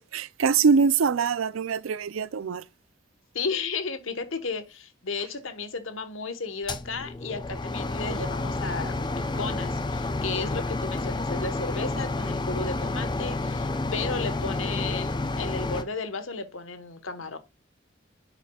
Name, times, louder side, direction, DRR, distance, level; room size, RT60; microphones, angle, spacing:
voice 1, 0.0-2.6, right 5 dB, 90° right, 0.5 m, -23 dB
voice 2, 3.3-17.4, left 4 dB, 80° left, 1.2 m, -34 dB
sound 1, 6.7-15.8, left 2 dB, 20° left, 0.6 m, -30 dB
9.7 x 5.9 x 2.3 m
head